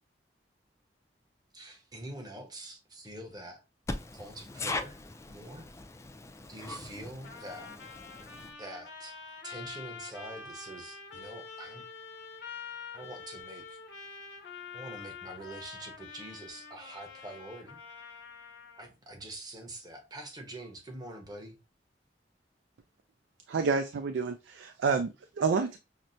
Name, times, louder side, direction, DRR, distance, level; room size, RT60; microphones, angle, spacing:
voice 1, 1.5-3.6 4.2-4.9 5.3-5.7 6.5-7.7 8.6-9.1 9.4-11.8 12.9-13.8 14.7-17.8 18.8-21.6, right 1 dB, 25° right, 0.9 m, -45 dB
voice 2, 3.9-8.5, left 3 dB, 15° left, 0.4 m, -40 dB
Trumpet, 7.2-18.9, left 5 dB, 80° left, 0.9 m, -46 dB
voice 3, 23.5-25.8, right 5 dB, 80° right, 0.4 m, -29 dB
5.8 x 2.1 x 2.6 m
head